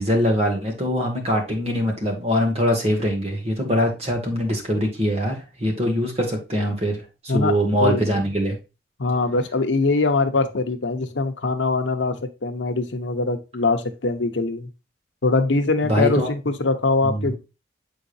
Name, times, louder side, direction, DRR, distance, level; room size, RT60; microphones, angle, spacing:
voice 1, 0.0-8.6 15.8-16.3 17.0-17.3, equal, 35° right, 2 dB, 1.7 m, -23 dB
voice 2, 9.0-14.7 15.2-17.4, left 3 dB, 90° left, 8 dB, 0.8 m, -22 dB
7.2 x 5.1 x 2.6 m, 0.28 s
head